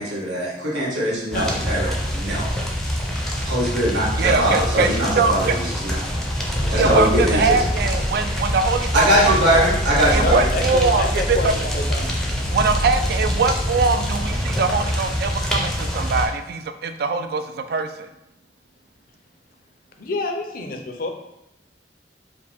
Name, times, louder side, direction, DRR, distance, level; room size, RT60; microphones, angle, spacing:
voice 1, 0.0-1.9 2.1-2.5 3.4-6.0 6.7-7.6 8.9-10.5, equal, 85° right, -6 dB, 1.4 m, -21 dB
voice 2, 1.3-1.8 3.1-3.2 10.2-12.1 20.0-21.1, left 2 dB, 50° left, 4 dB, 0.5 m, -28 dB
sound 1, 1.3-16.3, equal, 5° left, 0.5 m, -25 dB
voice 3, 4.2-5.5 6.7-9.7 10.1-11.5 12.5-18.1, right 4 dB, 60° right, 9 dB, 0.3 m, -22 dB
sound 2, 6.5-14.5, equal, 40° right, 1.0 m, -29 dB
4.8 x 2.1 x 3.5 m, 0.89 s
head